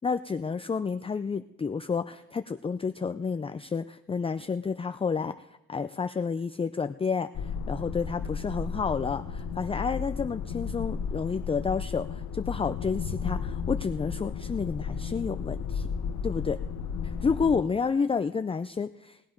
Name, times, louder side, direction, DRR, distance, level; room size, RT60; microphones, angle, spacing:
voice 1, 0.0-15.9 16.2-16.6 17.0-19.3, left 5 dB, 20° left, 10 dB, 0.4 m, -30 dB
sound 1, 7.3-17.6, left 6 dB, 70° left, 1.1 m, -34 dB
19.0 x 9.3 x 5.2 m, 0.89 s
cardioid pair, 90°, 30 cm